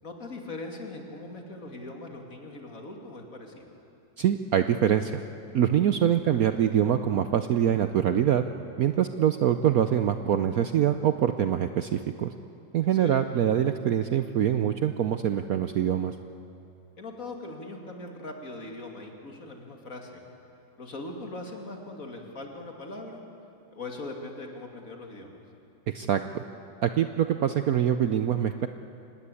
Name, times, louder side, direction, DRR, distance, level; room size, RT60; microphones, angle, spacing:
voice 1, 0.0-3.7 6.2-6.4 12.8-13.2 17.0-20.2 20.8-23.2 23.7-25.4, left 2 dB, 45° left, 2 dB, 2.8 m, -40 dB
voice 2, 4.2-5.2 5.5-8.4 8.8-12.3 12.7-16.1 25.9-26.2 26.8-28.7, right 9 dB, 65° right, 9 dB, 1.0 m, -24 dB
25.5 x 19.5 x 8.4 m, 2.7 s
omnidirectional pair, 2.0 m